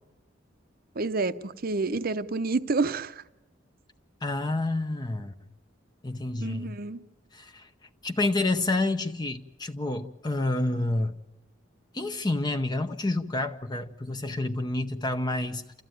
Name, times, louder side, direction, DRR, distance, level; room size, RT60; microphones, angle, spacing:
voice 1, 1.0-3.2 6.4-7.0, right 3 dB, 50° right, 0.7 m, -29 dB
voice 2, 4.2-5.3 6.0-6.7 7.3-7.7 8.0-11.1 11.9-15.8, left 2 dB, 20° left, 0.7 m, -29 dB
28.5 x 14.5 x 9.1 m
head